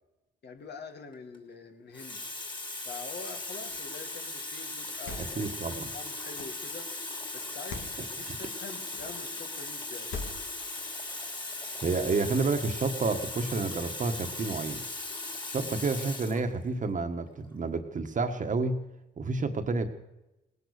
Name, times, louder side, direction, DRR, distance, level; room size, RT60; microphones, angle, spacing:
voice 1, 0.4-2.2 2.9-5.5 5.9-6.9 7.3-10.2 15.6-15.7, left 4 dB, 55° left, 6 dB, 1.9 m, -45 dB
Water tap faucet, 1.1-1.4 1.9-16.4 17.3-17.5, left 2 dB, 25° left, 3.0 m, -38 dB
sound 1, 3.7-4.0 4.8-5.5 6.3-6.7 7.5-8.0 8.9-9.2 10.0-10.7, left 3 dB, 75° left, 2.2 m, -42 dB
voice 2, 5.4-5.9 8.3-8.4 11.8-14.8 15.5-18.8 19.2-19.9, right 3 dB, 40° right, 7 dB, 1.5 m, -30 dB
18.5 x 11.0 x 6.7 m, 0.95 s
cardioid pair, 90°, 20 cm